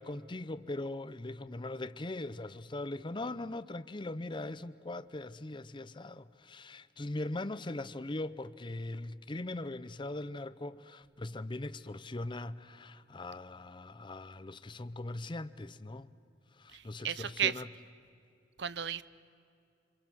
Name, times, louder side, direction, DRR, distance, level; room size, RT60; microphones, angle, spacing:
voice 1, 0.0-16.1 16.6-17.8, left 2 dB, 25° left, 0.7 m, -40 dB
voice 2, 16.7-17.5 18.6-19.0, right 9 dB, 65° right, 0.7 m, -33 dB
29.0 x 25.5 x 6.3 m
head